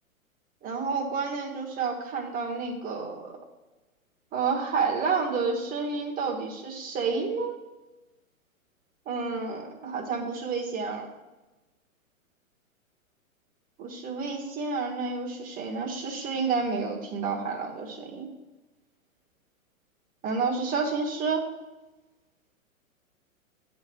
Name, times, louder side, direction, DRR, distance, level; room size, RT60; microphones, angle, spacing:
voice 1, 0.6-3.3 4.3-7.6 9.0-11.0 13.8-18.3 20.2-21.4, right 4 dB, 20° right, 0 dB, 1.5 m, -30 dB
9.8 x 4.0 x 7.3 m, 1.1 s
figure-of-eight pair, 110°, 42 cm